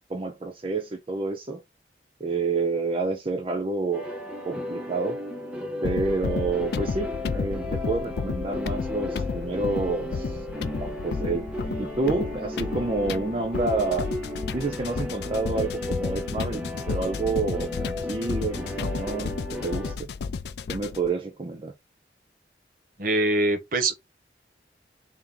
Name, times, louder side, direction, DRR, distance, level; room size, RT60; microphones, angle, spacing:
voice 1, 0.1-1.6 2.2-4.0 4.4-5.2 5.8-10.4 10.8-11.5 11.8-14.1 14.5-19.4 19.6-20.1 20.7-21.7, right 3 dB, 30° right, 0.5 m, -29 dB
sound 1, 3.9-20.0, left 1 dB, 5° right, 0.8 m, -34 dB
sound 2, 5.8-21.1, left 5 dB, 60° left, 0.4 m, -32 dB
voice 2, 23.0-23.9, right 2 dB, 50° right, 0.9 m, -23 dB
3.5 x 2.8 x 3.7 m
head